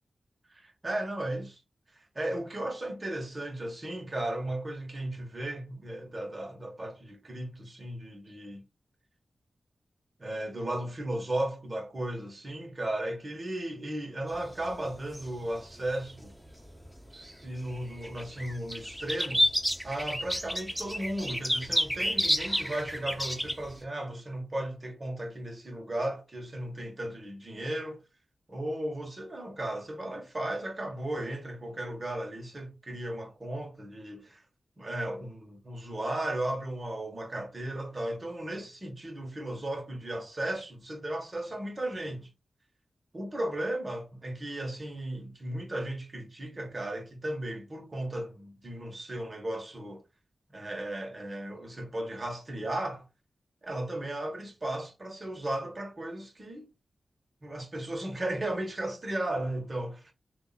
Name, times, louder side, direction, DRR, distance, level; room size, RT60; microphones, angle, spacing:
voice 1, 0.5-1.6 1.9-8.6 10.2-16.3 17.1-19.5 19.8-28.0 28.5-34.4 34.8-42.3 43.1-50.0 50.5-53.1 53.6-56.7 57.4-60.1, right 1 dB, 40° right, 1.6 m, -35 dB
sound 1, 14.3-16.8 17.2-23.7, equal, 5° right, 1.0 m, -30 dB
3.4 x 2.9 x 4.2 m
cardioid pair, 45°, 0 cm